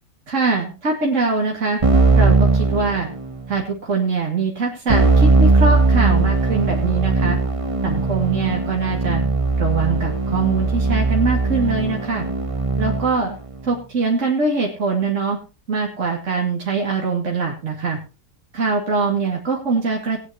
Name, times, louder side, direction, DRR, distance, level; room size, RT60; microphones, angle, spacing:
voice 1, 0.3-1.8 2.1-3.1 3.5-7.4 7.8-9.2 9.6-12.2 12.8-13.4 13.6-15.4 15.7-18.0 18.5-20.2, right 4 dB, 45° right, -1 dB, 2.6 m, -22 dB
Keyboard (musical), 1.8-3.5 4.9-13.3, right 3 dB, 25° right, 0.9 m, -19 dB
19.5 x 9.8 x 2.9 m, 0.31 s
omnidirectional pair, 1.8 m